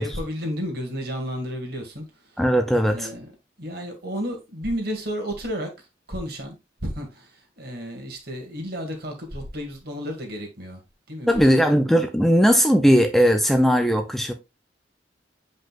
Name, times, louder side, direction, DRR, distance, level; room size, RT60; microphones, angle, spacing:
voice 1, 0.0-2.3 2.9-3.3 3.6-5.7 6.1-6.6 6.8-10.8 11.1-11.6, equal, 60° right, 2.0 m, -32 dB
voice 2, 2.4-3.1 11.3-14.3, equal, ahead, 0.5 m, -18 dB
7.8 x 5.2 x 2.4 m
head